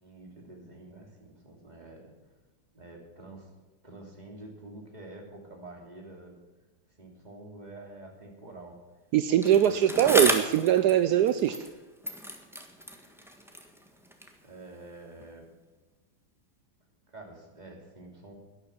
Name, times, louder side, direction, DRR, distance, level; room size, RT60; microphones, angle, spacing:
voice 1, 0.0-2.1 2.7-3.5 3.8-6.4 7.0-8.8 9.6-10.1 14.4-15.6 17.1-18.4, right 2 dB, 20° right, 0 dB, 3.1 m, -47 dB
voice 2, 9.1-11.6, right 10 dB, 70° right, 11 dB, 0.9 m, -22 dB
Bicycle, 9.4-11.8 12.0-14.4 15.2-15.3, equal, ahead, 1.2 m, -33 dB
12.0 x 10.5 x 7.3 m, 1.2 s
omnidirectional pair, 2.3 m